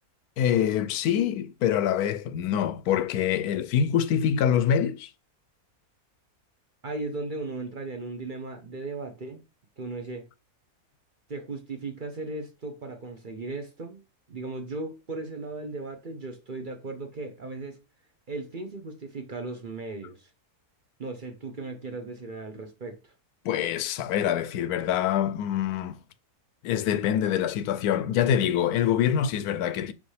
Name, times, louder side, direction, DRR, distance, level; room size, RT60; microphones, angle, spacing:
voice 1, 0.4-5.1 23.4-26.0 26.6-29.9, left 9 dB, 80° left, 1.1 m, -25 dB
voice 2, 6.8-9.4 9.8-10.3 11.3-14.0 14.3-17.8 18.3-20.3 21.0-23.1, right 3 dB, 40° right, 0.9 m, -37 dB
5.8 x 5.4 x 3.2 m
omnidirectional pair, 1.6 m